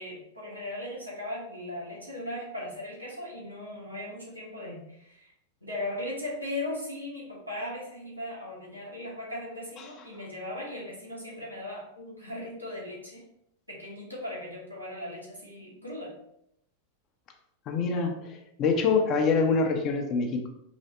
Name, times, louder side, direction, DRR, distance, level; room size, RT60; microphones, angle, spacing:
voice 1, 0.0-5.3 5.6-13.2 13.7-16.1, left 1 dB, 90° right, -6 dB, 1.6 m, -38 dB
voice 2, 17.7-20.5, left 4 dB, 35° left, 4 dB, 0.7 m, -25 dB
5.0 x 3.2 x 2.8 m, 0.75 s
figure-of-eight pair, 90°, 0 cm